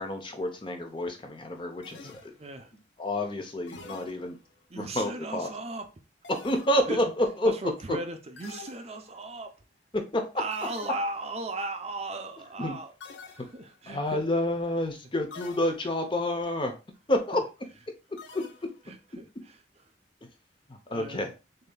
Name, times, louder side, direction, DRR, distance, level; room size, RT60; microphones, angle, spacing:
voice 1, 0.0-2.1 3.0-4.4 4.7-5.5 6.3-7.5 7.9-8.0 9.9-10.2 12.6-12.8 13.9-16.7 17.1-17.4 18.3-18.4 20.7-21.3, left 1 dB, 25° left, 0.7 m, -29 dB
sound 1, 1.8-2.7 3.7-4.7 6.2-7.1 8.4-9.4 10.5-11.4 13.0-13.9 15.3-16.1 18.2-19.0, left 4 dB, 80° left, 0.7 m, -48 dB
voice 2, 2.4-2.7 4.7-5.9 6.9-7.0 7.4-9.5 10.4-12.9 13.3-14.2 17.3-17.4 18.9-19.6 20.9-21.3, right 2 dB, 35° right, 0.6 m, -36 dB
6.5 x 2.8 x 2.3 m
head